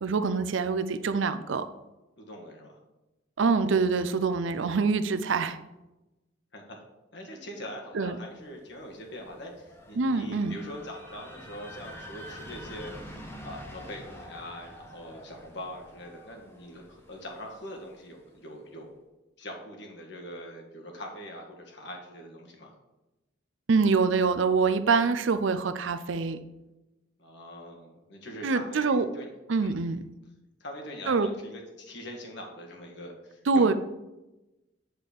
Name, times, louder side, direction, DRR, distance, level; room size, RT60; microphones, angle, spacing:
voice 1, 0.0-1.7 3.4-5.6 7.9-8.1 10.0-10.6 23.7-26.4 28.4-29.0 29.5-30.0 31.1-31.3 33.5-33.7, right 4 dB, 75° right, 11 dB, 0.5 m, -25 dB
voice 2, 2.2-2.8 6.5-6.8 7.1-18.9 19.4-22.7 27.2-29.3 29.6-29.8 30.6-33.7, equal, 60° left, 1 dB, 1.7 m, -43 dB
sound 1, 8.4-18.2, equal, 10° left, 1.1 m, -47 dB
7.8 x 4.2 x 6.7 m, 1.0 s
head